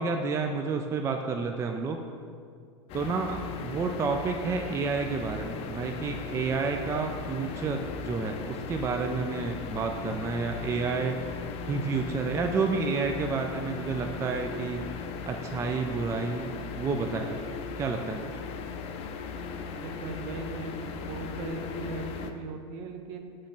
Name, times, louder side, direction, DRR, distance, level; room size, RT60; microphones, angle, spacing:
voice 1, 0.0-2.0 2.9-11.2 11.7-14.9 15.3-18.3, right 4 dB, 20° right, 4 dB, 0.4 m, -30 dB
sound 1, 2.9-22.3, left 5 dB, 45° left, 0.5 m, -38 dB
voice 2, 19.7-23.4, right 3 dB, 55° right, 5 dB, 0.7 m, -38 dB
6.2 x 3.2 x 5.8 m, 2.2 s
hypercardioid pair, 110°, 15 cm